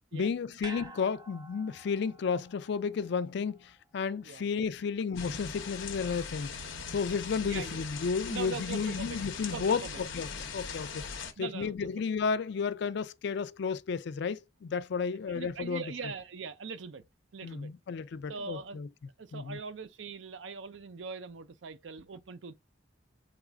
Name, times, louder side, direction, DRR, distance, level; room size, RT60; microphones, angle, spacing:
voice 1, 0.1-6.5 6.9-11.0 11.4-15.8 17.4-18.9 19.3-19.6, left 5 dB, 60° left, 0.4 m, -32 dB
sound 1, 0.6-5.0 5.3-5.4, right 2 dB, 20° right, 0.5 m, -51 dB
sound 2, 5.1-11.3, left 5 dB, 85° left, 0.8 m, -40 dB
voice 2, 7.4-7.8 8.3-9.2 9.5-10.0 10.9-11.0 11.4-11.9 15.3-17.0 17.3-17.7 18.3-18.8 19.2-22.5, right 5 dB, 75° right, 0.5 m, -41 dB
4.0 x 2.4 x 4.5 m
head